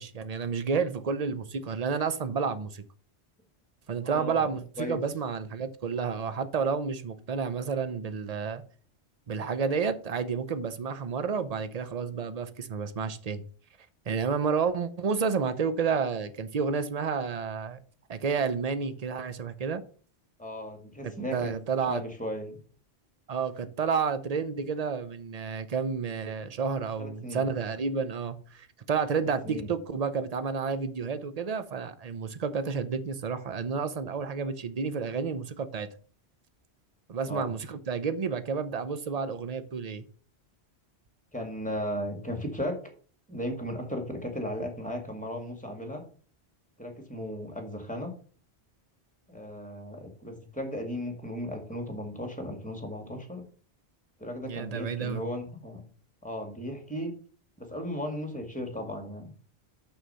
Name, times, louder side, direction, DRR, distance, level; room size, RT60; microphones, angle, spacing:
voice 1, 0.0-2.8 3.9-8.6 9.3-13.4 14.1-17.8 18.1-19.8 21.0-22.0 23.3-35.9 37.1-40.0 54.4-55.2, right 5 dB, 40° right, 0.8 m, -30 dB
voice 2, 4.0-5.0 20.4-21.5 21.9-22.6 27.0-27.4 29.2-29.7 37.2-37.5 41.3-42.8 43.3-46.0 46.8-48.1 49.3-53.4 54.2-55.8 56.2-57.1 57.6-59.3, equal, 5° left, 1.9 m, -36 dB
6.5 x 6.4 x 5.5 m
omnidirectional pair, 1.1 m